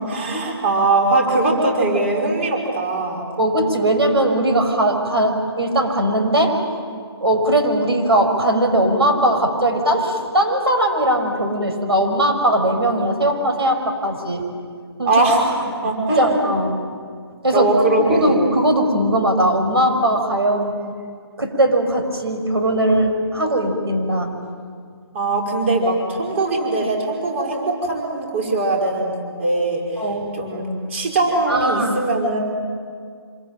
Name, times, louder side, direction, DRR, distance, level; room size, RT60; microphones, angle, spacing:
voice 1, 0.0-3.2 15.0-15.5 15.8-16.4 17.5-18.4 25.1-29.8 30.3-32.4, right 2 dB, 25° right, -1 dB, 5.6 m, -20 dB
voice 2, 3.4-6.6 7.2-14.5 15.0-15.1 15.8-16.9 17.4-17.7 18.0-20.8 21.4-24.3 30.0-30.3 31.5-31.9, right 1 dB, 65° right, 4 dB, 6.0 m, -19 dB
26.5 x 23.5 x 9.1 m, 2.1 s
figure-of-eight pair, 150°, 14 cm